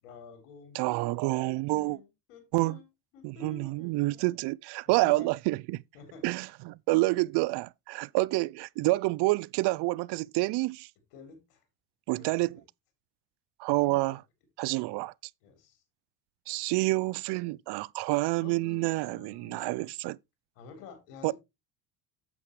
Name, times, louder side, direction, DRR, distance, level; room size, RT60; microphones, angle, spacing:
voice 1, 0.0-2.9 3.1-4.2 4.9-5.3 5.9-6.3 7.1-7.2 11.1-11.6 12.1-12.3 13.8-14.2 15.4-15.8 18.4-19.9 20.6-21.3, left 5 dB, 80° left, 3.5 m, -50 dB
voice 2, 0.7-2.0 2.5-2.8 3.2-5.8 6.2-10.9 12.1-12.6 13.6-14.2 14.6-15.1 16.5-20.2 21.2-21.3, right 21 dB, 60° right, 0.6 m, -28 dB
9.6 x 7.7 x 3.2 m
hypercardioid pair, 75°, 46 cm